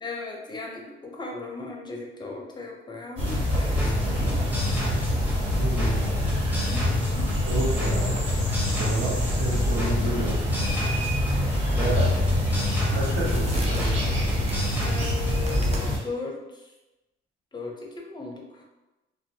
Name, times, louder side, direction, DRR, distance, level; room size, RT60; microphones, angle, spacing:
voice 1, 0.0-4.5 6.7-7.3 14.8-16.7 17.5-18.6, left 3 dB, 20° left, 0 dB, 0.5 m, -37 dB
sound 1, 3.2-15.8, equal, 10° right, 0.8 m, -30 dB
sound 2, 3.2-16.0, left 1 dB, 75° right, 1.4 m, -26 dB
voice 2, 5.5-6.1 7.4-8.2 8.5-10.4 11.7-12.1 12.9-13.9, right 2 dB, 55° right, -5 dB, 0.9 m, -30 dB
sound 3, 11.9-15.8, right 2 dB, 30° right, 0.5 m, -41 dB
2.5 x 2.1 x 2.6 m, 1.0 s
cardioid pair, 90°, 20 cm